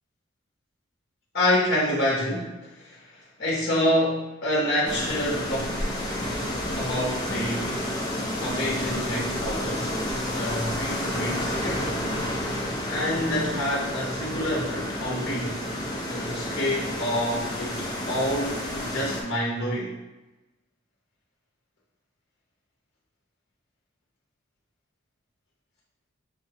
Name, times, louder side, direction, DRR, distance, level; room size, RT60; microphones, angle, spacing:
voice 1, 1.3-6.1 6.7-7.7 8.4-12.1 12.9-15.6 16.1-19.9, left 1 dB, 55° left, -4 dB, 0.8 m, -28 dB
sound 1, 4.9-19.2, left 1 dB, 20° left, 0.6 m, -30 dB
5.8 x 2.1 x 2.7 m, 1.1 s
head